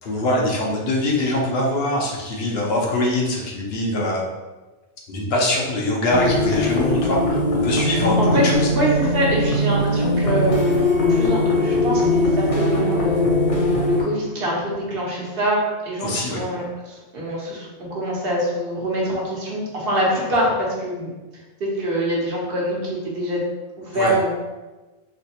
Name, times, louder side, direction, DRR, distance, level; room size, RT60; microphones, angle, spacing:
voice 1, 0.0-4.2 5.1-8.7 16.0-16.4 23.9-24.1, left 1 dB, 65° left, -2 dB, 0.9 m, -23 dB
sound 1, 6.1-14.0, left 1 dB, 40° left, 0.6 m, -20 dB
voice 2, 8.2-10.6 10.9-13.2 13.8-21.1 21.6-23.4 23.8-24.3, right 1 dB, 60° right, -4 dB, 1.1 m, -24 dB
3.2 x 3.0 x 2.8 m, 1.2 s
omnidirectional pair, 1.1 m